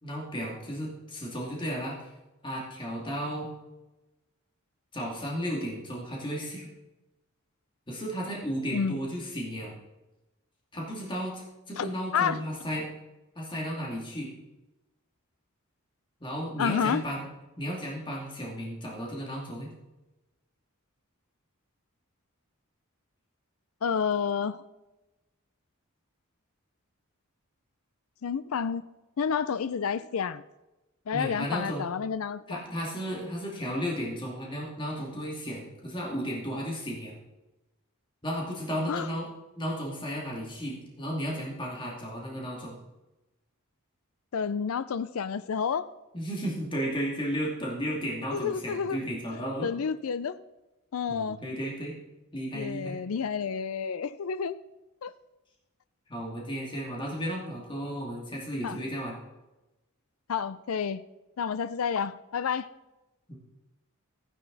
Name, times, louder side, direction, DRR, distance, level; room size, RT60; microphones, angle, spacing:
voice 1, 0.0-2.0 2.4-3.5 4.9-6.7 7.9-9.8 10.7-12.9 13.4-14.3 16.2-17.3 17.6-19.7 31.1-31.9 32.5-37.2 38.2-39.3 39.6-42.8 46.1-49.7 51.1-51.9 52.3-53.0 56.1-59.2 63.3-63.4, equal, 25° left, -3 dB, 2.5 m, -34 dB
voice 2, 11.8-12.4 16.6-17.0 23.8-24.6 28.2-28.9 29.2-30.4 31.1-32.6 38.9-39.1 44.3-45.9 48.3-49.0 49.6-50.4 50.9-51.4 52.5-54.5 55.0-55.1 58.6-58.8 60.3-61.0 61.4-62.7, left 6 dB, 75° left, 15 dB, 0.5 m, -30 dB
15.0 x 9.9 x 4.0 m, 1.0 s
head